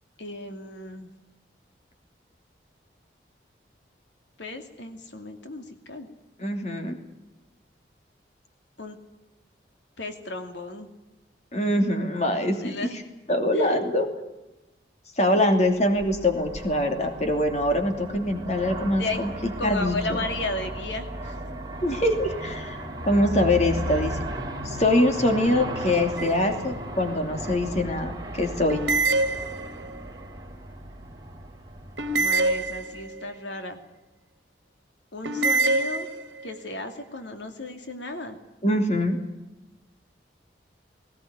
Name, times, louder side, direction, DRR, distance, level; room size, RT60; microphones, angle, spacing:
voice 1, 0.2-1.1 4.4-6.1 8.8-9.0 10.0-10.9 12.6-13.0 13.5-13.8 19.0-19.2 19.6-21.3 32.2-33.8 35.1-36.1 36.4-38.4, left 2 dB, 80° left, 6 dB, 2.5 m, -34 dB
voice 2, 6.4-7.0 11.5-12.9 13.3-14.1 15.2-20.0 21.8-24.1 24.6-28.8 38.6-39.2, left 1 dB, 35° left, 5 dB, 2.9 m, -24 dB
Aircraft, 15.7-33.0, right 1 dB, 20° right, 3.1 m, -36 dB
sound 1, 26.2-26.8 28.7-30.0 32.0-33.3 35.2-36.5, right 2 dB, 80° right, 1.6 m, -26 dB
19.5 x 19.0 x 9.6 m, 1.0 s
head